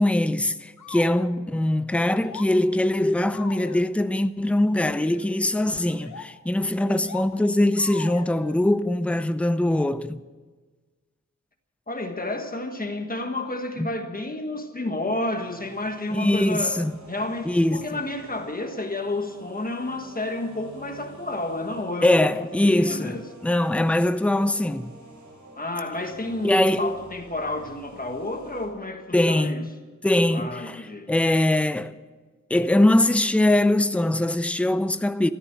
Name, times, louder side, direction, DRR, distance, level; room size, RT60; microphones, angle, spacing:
voice 1, 0.0-10.2 13.8-13.9 16.1-16.9 17.4-17.8 22.0-24.9 26.4-27.0 29.1-29.7 30.0-30.8 31.1-32.0 32.5-35.3, left 1 dB, 5° left, 0.5 m, -22 dB
sound 1, 0.8-1.3 1.9-2.5 3.3-3.9 4.9-5.3 5.8-6.3 6.8-7.3 7.8-8.6, left 6 dB, 80° left, 1.2 m, -40 dB
voice 2, 11.9-16.8 17.1-23.3 25.6-29.7 30.3-31.1, left 2 dB, 30° left, 1.4 m, -31 dB
sound 2, 14.9-28.7, right 2 dB, 80° right, 5.3 m, -48 dB
14.0 x 13.5 x 7.7 m
wide cardioid pair, 125°, 29 cm